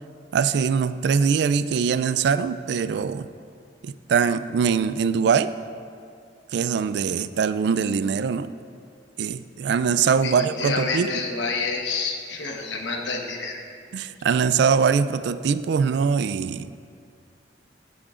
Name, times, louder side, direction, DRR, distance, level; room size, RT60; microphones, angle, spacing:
voice 1, 0.3-3.3 3.8-5.5 6.5-8.5 9.2-11.1 13.9-16.7, right 6 dB, 65° right, 14 dB, 0.3 m, -22 dB
voice 2, 10.2-13.6, left 3 dB, 75° left, 2 dB, 1.2 m, -28 dB
15.5 x 8.5 x 2.5 m, 2.3 s
head